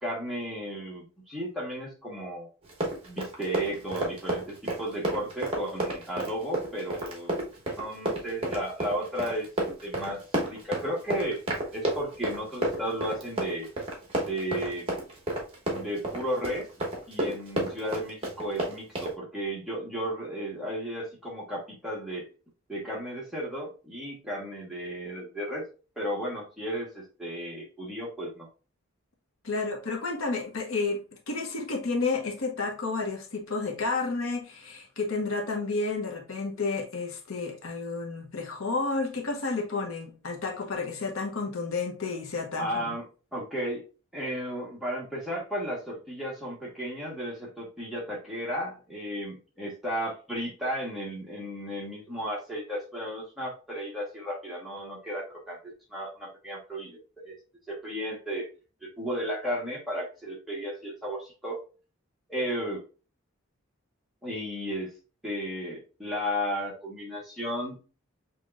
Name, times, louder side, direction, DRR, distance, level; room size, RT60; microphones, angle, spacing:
voice 1, 0.0-2.5 3.1-7.4 7.8-9.5 9.8-10.2 10.5-11.4 11.7-13.7 14.2-14.9 15.7-16.7 17.1-22.3 22.7-25.7 26.0-28.5 42.6-43.1 43.3-43.8 44.1-57.4 57.7-58.5 58.8-61.6 62.3-62.8 64.2-64.9 65.2-67.8, equal, ahead, 1.3 m, -34 dB
Run, 2.6-19.1, right 1 dB, 25° right, 1.1 m, -31 dB
voice 2, 29.4-43.0, left 3 dB, 75° left, 0.9 m, -31 dB
6.3 x 2.9 x 2.4 m
head